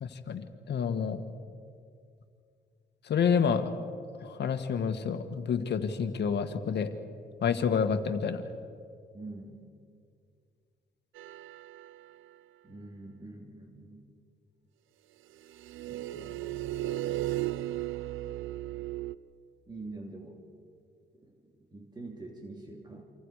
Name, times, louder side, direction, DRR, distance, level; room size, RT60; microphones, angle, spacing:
voice 1, 0.0-1.2 3.1-3.7 4.2-6.9 7.4-8.4, left 6 dB, 60° left, 8 dB, 1.8 m, -29 dB
voice 2, 9.1-9.6 12.6-14.1 15.9-16.4 19.7-20.4 21.2-21.4 21.7-23.0, right 2 dB, 20° right, 1 dB, 3.0 m, -45 dB
sound 1, 11.2-12.2 15.5-19.2, right 15 dB, 85° right, 0.6 m, -35 dB
28.5 x 26.0 x 5.0 m, 2.3 s
cardioid pair, 90°, 20 cm